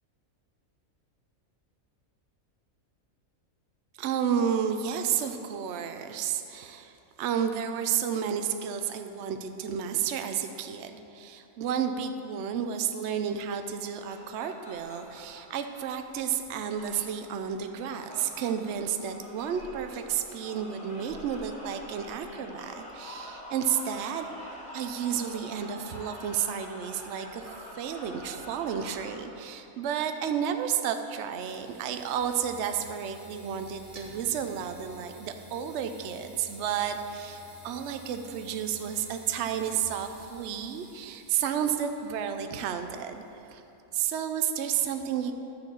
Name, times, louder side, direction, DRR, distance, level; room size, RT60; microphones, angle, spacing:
voice 1, 4.0-6.9 7.2-24.3 24.7-43.2 43.5-43.6 43.9-45.4, right 8 dB, 65° right, 7 dB, 0.8 m, -31 dB
sound 1, 13.7-29.1, equal, 35° left, 2.3 m, -46 dB
sound 2, 30.9-43.7, equal, 25° right, 1.4 m, -52 dB
11.0 x 4.5 x 7.3 m, 2.9 s
omnidirectional pair, 1.5 m